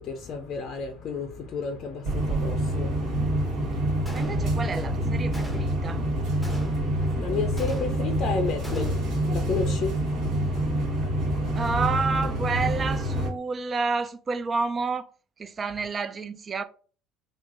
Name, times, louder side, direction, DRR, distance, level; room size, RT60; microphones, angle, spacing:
voice 1, 0.0-4.2 6.7-11.6, left 5 dB, 45° left, 0.5 m, -33 dB
sound 1, 2.1-13.3, right 1 dB, 55° right, 1.3 m, -27 dB
Gunshot gunfire, 4.1-4.8 5.3-5.9 6.4-7.0 7.6-8.2 8.6-9.2, left 1 dB, 5° left, 0.8 m, -43 dB
voice 2, 4.1-6.0 11.6-15.1 15.4-16.6, right 4 dB, 35° right, 0.4 m, -29 dB
2.9 x 2.0 x 3.8 m
figure-of-eight pair, 60°, 0 cm